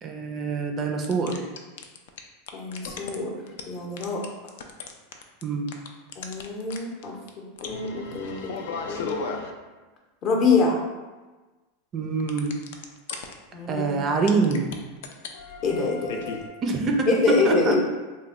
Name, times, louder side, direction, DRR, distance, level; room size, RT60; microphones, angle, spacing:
voice 1, 0.0-1.5 5.4-5.7 11.9-12.5 13.7-14.7 16.6-17.8, right 4 dB, 30° right, 3 dB, 0.3 m, -25 dB
sound 1, 1.0-2.2 2.5-3.2 3.5-3.6 4.0-5.4 5.7-6.8 7.0-7.1 7.3-7.4 7.6-9.5 12.2-13.3 14.3-14.7 15.0-16.5, left 5 dB, 75° left, 0.3 m, -35 dB
voice 2, 2.5-3.4 3.7-4.2 6.2-8.4 8.9-9.3 10.2-10.8 13.5-14.0 15.6-16.3 17.1-17.8, left 4 dB, 40° left, 0 dB, 0.6 m, -25 dB
3.0 x 2.1 x 3.6 m, 1.2 s
supercardioid pair, 140°, 0 cm